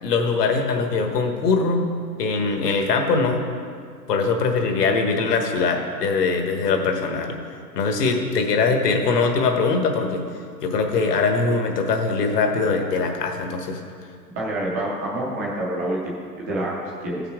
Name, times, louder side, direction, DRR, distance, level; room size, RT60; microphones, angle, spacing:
voice 1, 0.0-1.9 2.2-3.4 4.1-7.4 7.7-10.2 10.6-13.8, left 4 dB, 70° left, 4 dB, 1.5 m, -22 dB
voice 2, 14.4-16.2 16.5-17.2, right 1 dB, 10° right, -3 dB, 0.4 m, -27 dB
15.0 x 5.8 x 3.7 m, 2.2 s
hypercardioid pair, 145°, 49 cm